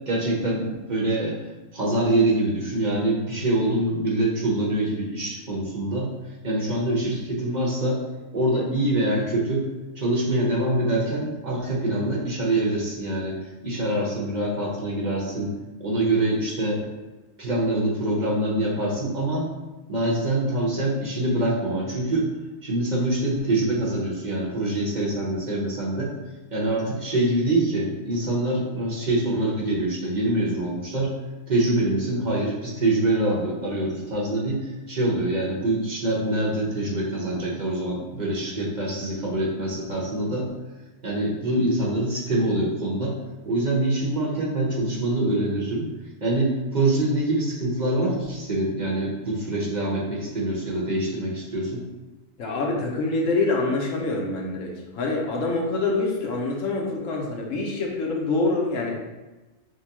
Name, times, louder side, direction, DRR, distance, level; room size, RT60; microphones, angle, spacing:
voice 1, 0.1-1.4 1.7-6.1 6.4-8.0 8.3-9.7 10.0-13.4 13.6-15.5 15.8-16.9 17.4-19.5 19.9-22.3 22.6-26.1 26.5-31.1 31.5-40.5 41.0-43.2 43.4-45.9 46.2-51.8, right 1 dB, 35° right, -5 dB, 1.0 m, -25 dB
voice 2, 52.4-59.0, left 3 dB, 70° left, -1 dB, 1.1 m, -25 dB
6.4 x 2.2 x 2.9 m, 1.1 s
omnidirectional pair, 1.4 m